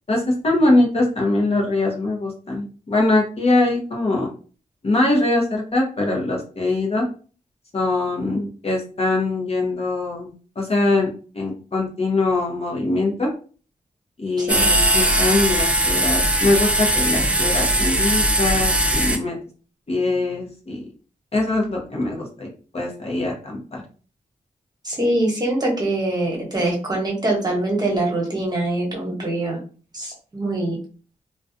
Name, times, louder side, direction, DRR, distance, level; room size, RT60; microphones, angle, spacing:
voice 1, 0.1-4.3 4.8-7.1 7.7-11.1 11.3-13.3 14.2-19.4 19.9-20.8 21.3-22.5 22.7-23.8, left 2 dB, 40° left, -1 dB, 0.8 m, -22 dB
sound 1, 14.5-19.2, right 1 dB, 10° right, 0.5 m, -19 dB
voice 2, 24.8-29.6 29.9-30.8, right 1 dB, 25° right, -2 dB, 1.1 m, -23 dB
2.3 x 2.3 x 2.5 m, 0.39 s
cardioid pair, 70°, 15 cm